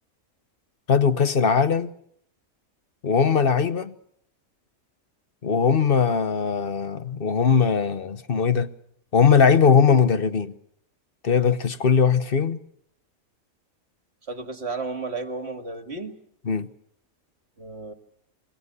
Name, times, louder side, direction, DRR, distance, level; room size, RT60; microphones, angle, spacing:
voice 1, 0.9-1.9 3.0-3.9 5.4-8.7 9.1-10.5 11.2-12.6 16.4-16.7, left 6 dB, 45° left, 1.2 m, -20 dB
voice 2, 14.3-16.2 17.6-17.9, right 3 dB, 50° right, 2.3 m, -33 dB
28.0 x 23.0 x 6.8 m
omnidirectional pair, 1.4 m